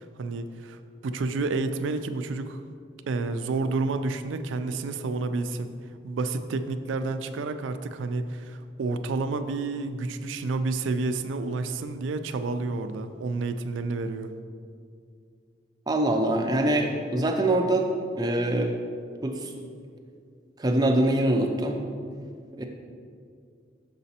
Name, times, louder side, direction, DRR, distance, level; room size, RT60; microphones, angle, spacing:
voice 1, 0.0-2.6 3.1-5.7 6.0-14.3, right 3 dB, 80° right, 9 dB, 0.4 m, -30 dB
voice 2, 15.9-17.9 18.2-18.8 19.2-19.5 20.6-21.8 22.5-22.6, right 1 dB, 20° right, 3 dB, 0.4 m, -24 dB
6.8 x 4.1 x 4.2 m, 2.3 s
head